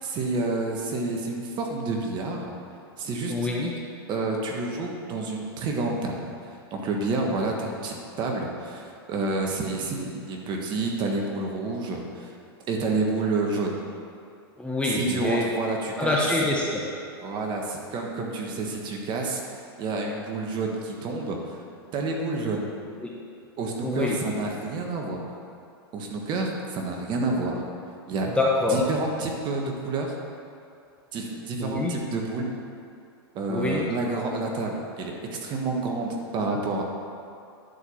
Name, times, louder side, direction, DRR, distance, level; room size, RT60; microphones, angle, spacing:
voice 1, 0.0-2.5 3.0-3.5 4.1-6.3 6.7-12.3 12.7-13.8 14.9-16.2 17.2-19.4 19.8-21.6 21.9-22.7 23.6-25.3 25.9-27.6 28.1-28.3 28.7-30.1 31.1-32.6 33.3-36.8, right 3 dB, 35° right, 1 dB, 1.4 m, -29 dB
voice 2, 3.3-3.7 14.6-15.5 16.0-17.0 23.0-23.1 23.8-24.2 28.4-28.8 31.6-31.9 33.5-33.9, left 2 dB, 10° left, -3 dB, 1.0 m, -26 dB
11.0 x 4.8 x 7.1 m, 2.5 s
hypercardioid pair, 125°, 13 cm